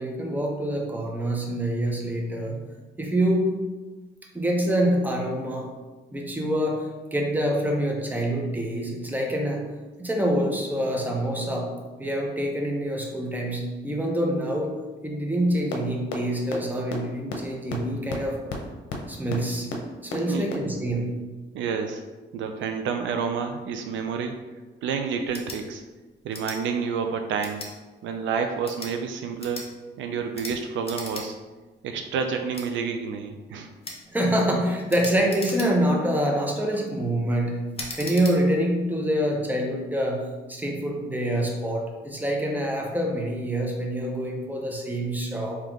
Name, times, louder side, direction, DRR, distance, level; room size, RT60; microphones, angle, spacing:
voice 1, 0.0-2.6 3.0-3.5 4.3-5.7 6.1-9.6 10.0-11.7 12.0-14.7 15.0-18.4 19.1-19.7 20.0-21.1 34.1-37.6 38.0-45.6, right 1 dB, 10° right, 0 dB, 0.8 m, -26 dB
sound 1, 15.7-15.8 16.1-16.2 16.5-16.6 16.9-17.0 17.3-17.4 17.7-17.8 18.1-18.2 18.5-18.6 18.9-19.0 19.3-19.4 19.7-19.8 20.1-20.2 20.5-20.6, left 5 dB, 70° left, 0.7 m, -31 dB
voice 2, 20.1-20.5 21.5-22.0 22.3-24.3 24.8-25.8 26.2-27.7 28.0-29.7 30.0-31.4 31.8-33.7, right 6 dB, 75° right, 5 dB, 0.4 m, -29 dB
sound 2, 25.3-25.6 26.3-26.6 27.4-27.7 28.5-28.9 29.4-29.7 30.3-30.6 30.8-31.3 31.6-31.7 32.5-32.7 33.8-34.0 34.9-36.0 36.5-36.8 37.7-38.4, left 2 dB, 30° left, 0.9 m, -38 dB
3.5 x 2.9 x 3.5 m, 1.2 s
cardioid pair, 90°, 20 cm